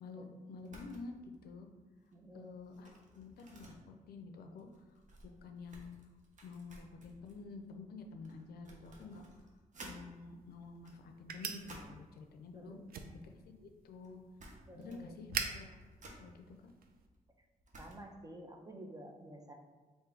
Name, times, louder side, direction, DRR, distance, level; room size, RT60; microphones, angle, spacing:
voice 1, 0.0-1.7 2.3-6.0 6.4-9.2 9.8-12.8 13.1-14.2 14.7-15.7 16.0-16.7, left 4 dB, 85° left, 5 dB, 0.5 m, -50 dB
sound 1, 0.6-1.0 1.3-1.6 1.9-10.0 10.6-12.1 13.0-13.8 14.0-14.1 14.4-15.1 15.4-18.3, right 1 dB, 55° right, 0.9 m, -56 dB
voice 2, 2.1-2.5 12.5-12.8 14.7-15.1 17.8-19.5, right 1 dB, 25° right, 2 dB, 0.7 m, -51 dB
sound 2, 9.9-17.1, right 6 dB, 75° right, 0.4 m, -46 dB
3.7 x 2.6 x 4.5 m, 1.3 s
cardioid pair, 75°, 16 cm